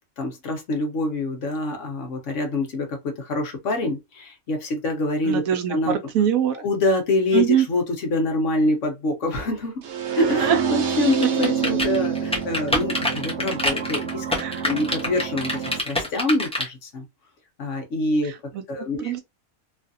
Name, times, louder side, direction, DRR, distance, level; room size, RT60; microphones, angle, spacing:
voice 1, 0.2-5.4 5.7-6.0 6.6-9.8 10.1-14.3 14.6-17.0 17.6-18.3 18.7-19.1, left 2 dB, 65° left, 1.2 m, -25 dB
voice 2, 5.3-6.6 7.3-7.7 10.4-10.6 14.4-14.7 18.2-18.6 19.0-19.2, right 9 dB, 80° right, 1.1 m, -23 dB
sound 1, 9.8-15.8, right 7 dB, 60° right, 0.9 m, -27 dB
sound 2, 11.1-16.6, left 1 dB, 5° left, 0.8 m, -25 dB
3.1 x 2.4 x 2.6 m
omnidirectional pair, 1.4 m